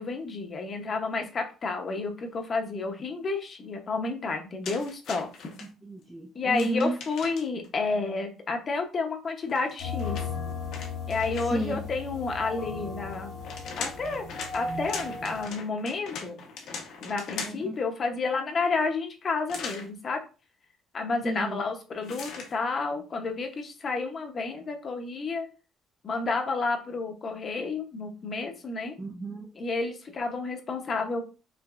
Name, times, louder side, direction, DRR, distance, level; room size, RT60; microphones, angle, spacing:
voice 1, 0.0-5.3 6.3-10.2 11.1-13.4 13.8-14.3 14.5-16.4 17.0-20.2 20.9-25.5 26.0-28.9 29.5-31.2, left 3 dB, 30° left, 5 dB, 0.8 m, -30 dB
sound 1, 4.6-5.7 6.5-7.7 9.5-11.7 13.1-17.8 19.5-19.9 22.0-22.5, left 5 dB, 65° left, 1.1 m, -40 dB
voice 2, 5.8-6.9 11.4-11.7 17.4-17.6 21.2-21.6 29.0-29.5, right 1 dB, 10° right, 1 dB, 0.5 m, -32 dB
sound 2, 9.8-15.5, left 4 dB, 85° left, 2.1 m, -36 dB
5.8 x 3.1 x 2.4 m, 0.33 s
cardioid pair, 175°, 0 cm